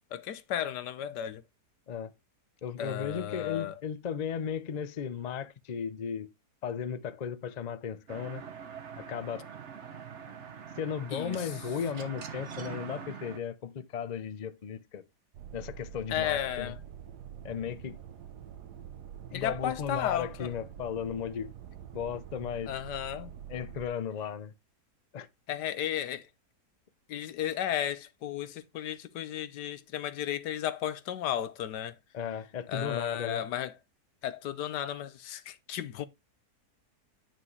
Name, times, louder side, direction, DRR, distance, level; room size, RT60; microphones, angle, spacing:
voice 1, 0.1-1.4 2.8-3.7 11.1-11.5 16.1-16.8 19.3-20.5 22.7-23.3 25.5-26.3 27.1-32.0 32.7-33.7 34.2-36.1, left 10 dB, 85° left, 1.4 m, -34 dB
voice 2, 2.6-6.3 6.6-8.4 9.0-9.5 10.8-15.0 15.5-16.8 17.4-18.0 19.3-21.5 21.9-22.7 23.5-24.5 25.1-25.3 32.1-33.4, left 7 dB, 60° left, 0.4 m, -35 dB
sound 1, 8.1-13.4, right 7 dB, 50° right, 1.3 m, -43 dB
sound 2, 15.3-23.9, right 9 dB, 75° right, 1.4 m, -46 dB
9.6 x 6.0 x 3.1 m
omnidirectional pair, 1.8 m